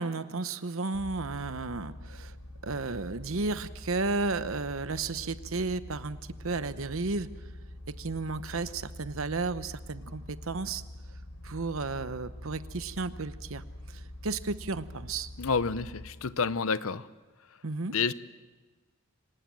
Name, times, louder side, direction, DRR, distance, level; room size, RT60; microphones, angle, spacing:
voice 1, 0.0-2.3 2.6-7.3 8.0-10.8 11.4-13.6 13.9-15.3 17.6-18.0, right 3 dB, 65° right, 13 dB, 0.9 m, -33 dB
sound 1, 0.9-16.1, left 1 dB, 85° left, 5.2 m, -45 dB
voice 2, 15.4-17.1 17.9-18.1, left 5 dB, 70° left, 15 dB, 0.7 m, -29 dB
25.5 x 19.0 x 7.6 m, 1.3 s
head